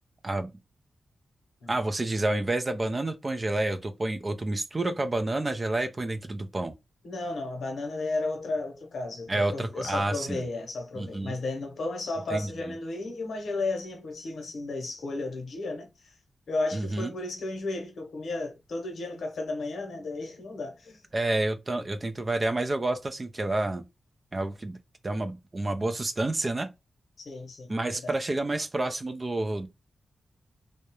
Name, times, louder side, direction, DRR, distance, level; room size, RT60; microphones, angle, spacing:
voice 1, 1.7-6.7 9.3-10.4 11.0-11.3 12.3-12.5 16.7-17.1 21.1-23.8 24.3-24.8 25.0-26.7 27.7-29.7, right 2 dB, 25° right, 0.3 m, -29 dB
voice 2, 7.0-16.1 16.5-21.0 27.2-28.1, left 2 dB, 75° left, 0.8 m, -34 dB
2.3 x 2.0 x 2.9 m
wide cardioid pair, 120°, 0 cm